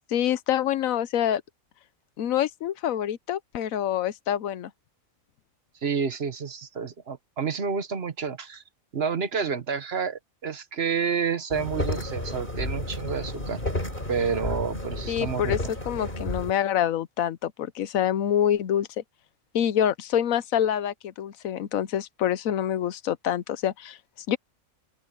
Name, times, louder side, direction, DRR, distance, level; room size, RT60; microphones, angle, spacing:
voice 1, 0.1-1.4 2.2-4.7 15.1-15.6 15.8-18.9 19.5-24.0 24.3-24.4, left 10 dB, 85° left, 1.2 m, -26 dB
voice 2, 5.8-8.6 8.9-13.6 14.1-15.5, right 6 dB, 50° right, 1.3 m, -29 dB
sound 1, 11.5-16.5, left 1 dB, 40° left, 4.9 m, -31 dB
open air
omnidirectional pair, 1.4 m